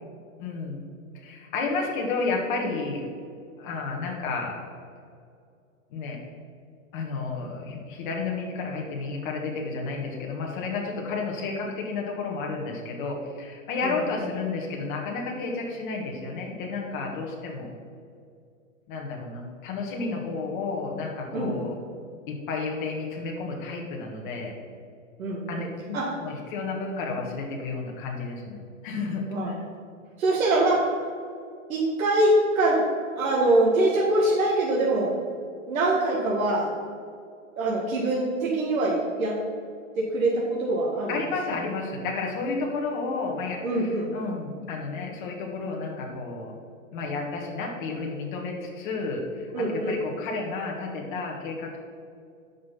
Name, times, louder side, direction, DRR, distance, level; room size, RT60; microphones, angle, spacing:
voice 1, 0.4-0.8 1.1-3.0 3.6-4.5 5.9-6.2 6.9-17.7 18.9-21.8 22.3-24.5 25.5-28.6 28.8-29.5 41.1-46.5 46.9-51.8, left 4 dB, 40° left, -1 dB, 1.6 m, -31 dB
voice 2, 21.3-21.6 25.2-26.1 29.3-29.5 30.2-30.9 31.7-32.8 33.1-35.1 35.7-36.7 37.6-39.4 40.0-41.2 43.6-44.1 49.5-50.0, right 2 dB, 85° right, -4 dB, 2.1 m, -24 dB
9.5 x 5.6 x 5.8 m, 2.3 s
hypercardioid pair, 165°, 40 cm